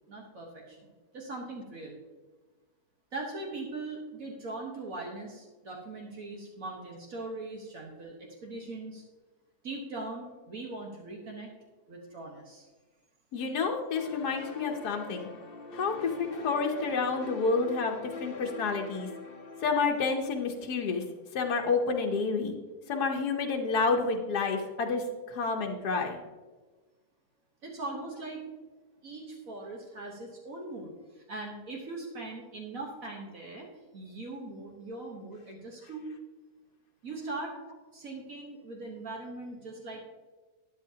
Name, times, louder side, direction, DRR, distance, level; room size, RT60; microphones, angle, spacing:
voice 1, 0.1-2.0 3.1-9.0 9.6-11.6 11.9-12.7 27.6-28.4 29.0-36.1 37.0-37.5 37.9-40.0, right 2 dB, 60° right, -1 dB, 1.6 m, -40 dB
voice 2, 13.3-15.3 15.7-19.1 19.6-21.0 21.3-22.5 22.9-26.2, left 4 dB, 90° left, 2 dB, 1.5 m, -29 dB
sound 1, 13.9-21.4, left 3 dB, 45° left, 1.0 m, -44 dB
12.5 x 10.0 x 2.8 m, 1.3 s
omnidirectional pair, 1.6 m